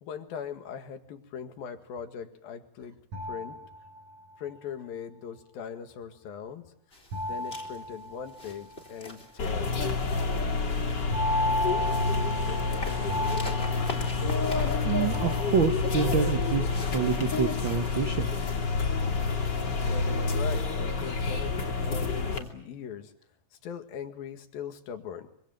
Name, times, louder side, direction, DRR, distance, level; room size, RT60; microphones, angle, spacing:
voice 1, 0.0-3.0 3.3-3.6 4.4-6.7 7.2-9.8 19.8-23.1 23.6-25.3, left 7 dB, 75° left, 7 dB, 3.7 m, -40 dB
sound 1, 3.1-4.3 7.1-8.7 11.1-14.7 15.1-16.0, equal, 50° right, 9.0 m, -34 dB
sound 2, 6.9-22.5, left 2 dB, 15° left, 4.0 m, -46 dB
sound 3, 9.4-22.4, left 4 dB, 30° left, 3.0 m, -28 dB
voice 2, 14.8-18.3, right 7 dB, 85° right, 7 dB, 1.0 m, -28 dB
25.5 x 25.0 x 7.8 m, 0.66 s
omnidirectional pair, 4.2 m